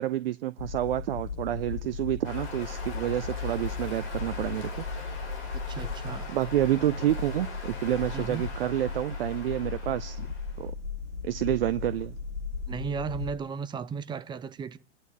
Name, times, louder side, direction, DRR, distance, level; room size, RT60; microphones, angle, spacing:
voice 1, 0.0-4.8 6.3-10.3 10.6-10.7 11.2-12.1, right 13 dB, 55° right, 0.7 m, -29 dB
sound 1, 0.6-13.3, left 4 dB, 90° left, 1.5 m, -36 dB
sound 2, 2.2-10.6, left 4 dB, 35° left, 5.7 m, -43 dB
voice 2, 5.5-6.3 8.1-8.4 12.7-14.8, right 6 dB, 15° right, 0.7 m, -35 dB
29.0 x 11.0 x 4.5 m
figure-of-eight pair, 100°, 35 cm